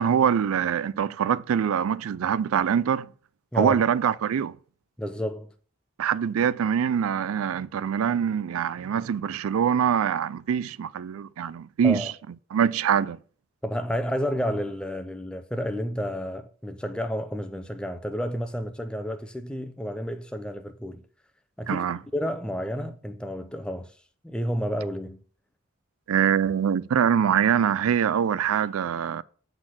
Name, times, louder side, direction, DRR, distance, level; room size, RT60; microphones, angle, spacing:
voice 1, 0.0-3.1 3.5-4.5 6.0-12.1 12.5-13.2 21.7-22.0 26.1-29.2, right 8 dB, 80° right, 0.4 m, -24 dB
voice 2, 3.5-3.8 5.0-5.5 11.8-12.1 13.6-21.0 21.6-21.9 22.1-23.9 24.2-25.2, equal, 5° left, 0.5 m, -30 dB
7.9 x 4.2 x 5.8 m
head